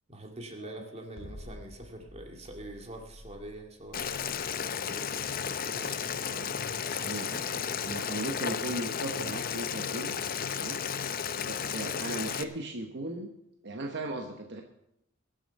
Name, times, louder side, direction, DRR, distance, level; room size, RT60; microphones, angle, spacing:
voice 1, 0.1-7.2, right 1 dB, 30° right, 2 dB, 2.2 m, -46 dB
Mallet percussion, 0.6-2.8, left 1 dB, 5° left, 6.2 m, -57 dB
sound 1, 1.2-7.3, left 1 dB, 70° left, 1.6 m, -50 dB
Boiling, 3.9-12.4, left 7 dB, 45° left, 0.6 m, -33 dB
voice 2, 6.3-6.6 6.9-10.2 10.5-10.8 11.4-13.3 13.6-14.6, right 2 dB, 60° right, 3 dB, 1.1 m, -37 dB
22.0 x 7.7 x 5.4 m, 0.81 s
head